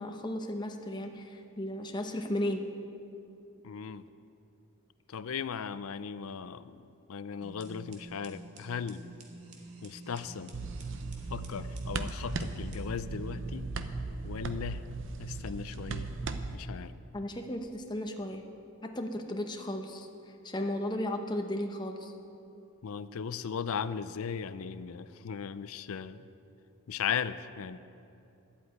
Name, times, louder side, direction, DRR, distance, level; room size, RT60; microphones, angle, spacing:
voice 1, 0.0-2.7 17.1-18.4 18.8-20.1 20.4-22.1, left 1 dB, 20° left, 4 dB, 0.8 m, -35 dB
voice 2, 3.6-4.1 5.1-6.8 7.1-9.0 9.8-10.5 11.3-13.7 14.2-14.9 15.2-16.1 16.5-17.0 22.8-26.3 26.9-27.8, left 6 dB, 70° left, 14 dB, 0.4 m, -37 dB
sound 1, 7.4-13.7, right 2 dB, 85° right, 1.7 m, -49 dB
sound 2, 10.5-16.6, right 3 dB, 55° right, 0.6 m, -37 dB
11.5 x 8.2 x 9.0 m, 2.7 s
head